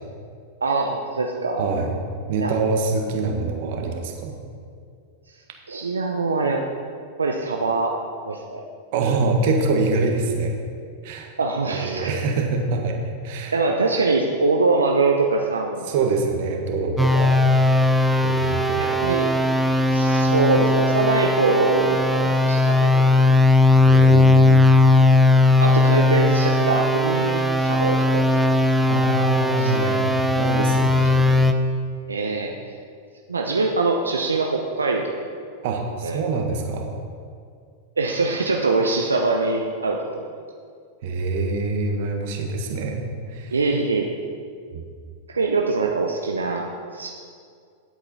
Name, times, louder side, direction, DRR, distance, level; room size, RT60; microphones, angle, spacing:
voice 1, 0.6-1.7 2.4-2.5 5.7-6.6 7.2-8.0 8.3-8.6 11.4-12.1 13.5-15.9 18.8-19.4 19.9-22.9 25.6-28.3 29.1-29.3 29.6-30.0 31.3-31.4 32.1-32.5 33.3-35.4 36.0-36.2 38.0-40.3 43.5-44.1 45.3-47.1, right 3 dB, 90° right, 1 dB, 0.6 m, -23 dB
voice 2, 1.6-1.9 2.3-4.4 8.9-10.5 11.0-11.3 11.7-12.9 13.2-13.5 15.9-17.4 18.2-19.0 23.9-24.6 28.9-31.3 35.6-36.9 41.0-43.0 43.3-43.5 44.7-44.8, right 3 dB, 60° right, 2 dB, 1.4 m, -25 dB
sound 1, 17.0-31.5, left 2 dB, ahead, 0.6 m, -18 dB
9.4 x 8.0 x 4.1 m, 2.2 s
hypercardioid pair, 100°, 0 cm